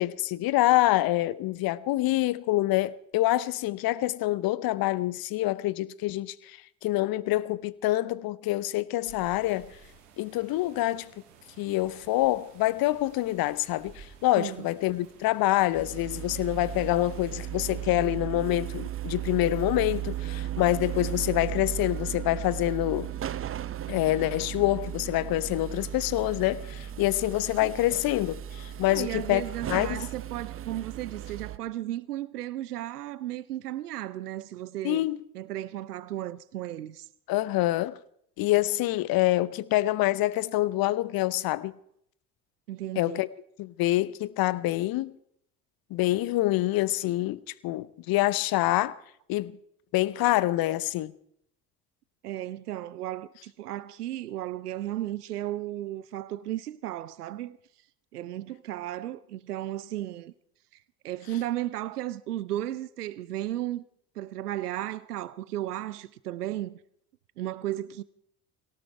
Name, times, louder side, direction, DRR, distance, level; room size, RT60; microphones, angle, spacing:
voice 1, 0.0-9.7 10.2-11.1 11.6-23.1 23.9-29.4 29.7-30.0 34.8-35.2 37.3-38.0 38.4-41.7 43.0-43.3 43.6-45.2 45.9-49.0 49.3-49.6 49.9-51.1, left 16 dB, 50° left, 0.8 m, -26 dB
sound 1, 9.1-17.9, right 6 dB, 75° right, 2.4 m, -54 dB
voice 2, 14.4-14.7 27.6-27.7 28.9-35.1 35.3-37.1 42.7-43.2 52.2-57.6 58.1-60.3 61.0-63.8 64.2-66.8 67.4-68.0, right 14 dB, 90° right, 0.5 m, -34 dB
sound 2, 15.7-31.6, right 12 dB, 30° right, 0.7 m, -36 dB
18.0 x 17.5 x 4.5 m
hypercardioid pair, 55°, 45 cm